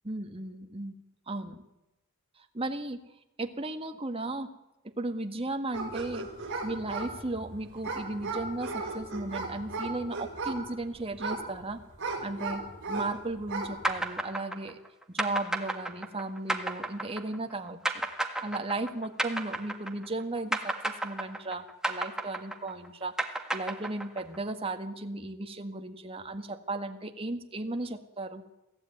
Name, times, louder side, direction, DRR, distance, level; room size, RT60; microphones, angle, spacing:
voice 1, 0.1-1.0 1.3-1.6 2.5-3.0 3.4-4.5 5.0-6.3 6.6-11.8 12.2-14.8 15.1-18.1 18.4-28.4, right 2 dB, 25° right, 6 dB, 1.8 m, -35 dB
sound 1, 5.7-13.1 13.4-13.8, right 3 dB, 55° right, 6.7 m, -36 dB
sound 2, 13.8-20.2 20.5-24.4, right 1 dB, 5° right, 1.7 m, -32 dB
23.0 x 15.5 x 9.4 m, 0.96 s
head